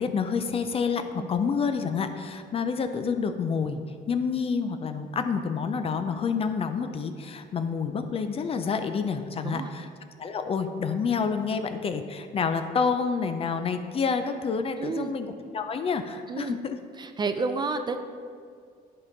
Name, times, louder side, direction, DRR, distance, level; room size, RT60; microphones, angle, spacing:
voice 1, 0.0-3.8 4.1-9.9 10.2-16.8, left 5 dB, 35° left, 8 dB, 0.4 m, -28 dB
voice 2, 14.8-15.1 16.3-16.6 17.0-18.0, right 4 dB, 25° right, 8 dB, 0.4 m, -30 dB
10.5 x 3.7 x 4.0 m, 2.2 s
cardioid pair, 110°, 17 cm